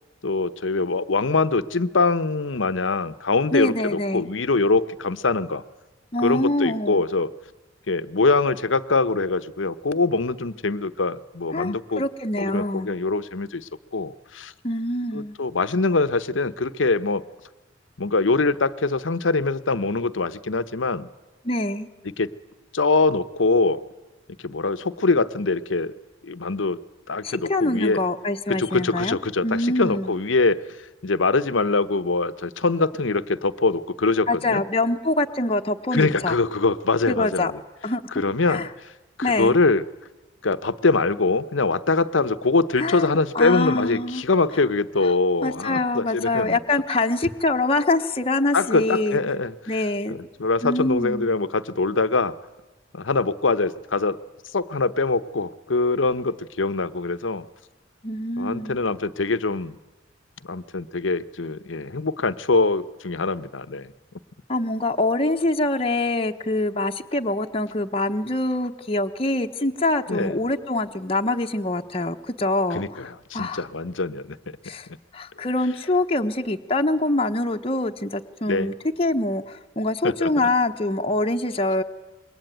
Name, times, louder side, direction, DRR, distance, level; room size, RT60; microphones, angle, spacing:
voice 1, 0.2-5.6 6.2-7.3 7.9-12.0 12.4-14.5 15.1-17.2 18.0-21.1 22.0-22.3 22.7-23.8 24.4-25.9 26.2-26.8 27.1-28.0 28.5-34.6 35.9-37.6 38.1-38.9 39.2-39.8 40.4-46.6 48.5-49.8 50.1-52.4 52.9-54.2 54.5-57.5 58.4-59.8 60.5-63.9 70.1-70.4 72.7-74.4 78.5-78.7 80.0-80.3, left 3 dB, 90° left, 13 dB, 0.9 m, -23 dB
voice 2, 3.5-4.2 6.1-7.0 11.5-12.9 14.6-15.4 21.4-21.9 27.2-29.2 29.4-30.1 34.3-36.3 37.1-37.5 37.8-38.0 38.5-38.7 39.2-39.6 42.8-44.2 45.0-45.1 45.4-49.2 49.7-50.2 50.6-51.3 58.0-58.8 64.5-73.1 73.3-73.6 74.6-74.9 75.1-81.8, left 2 dB, 30° left, 4 dB, 1.0 m, -24 dB
26.5 x 22.0 x 9.2 m, 1.1 s
head